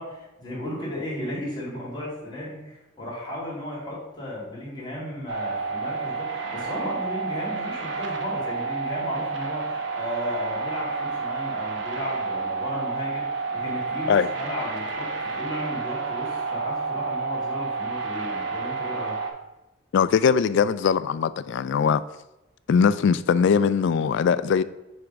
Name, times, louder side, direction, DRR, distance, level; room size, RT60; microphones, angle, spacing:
voice 1, 0.0-19.2, left 1 dB, 20° left, 2.3 m, -34 dB
sound 1, 5.3-19.3, right 4 dB, 65° right, 0.9 m, -30 dB
voice 2, 19.9-22.0 22.7-24.6, left 6 dB, 60° left, 0.3 m, -21 dB
6.5 x 3.5 x 5.1 m
head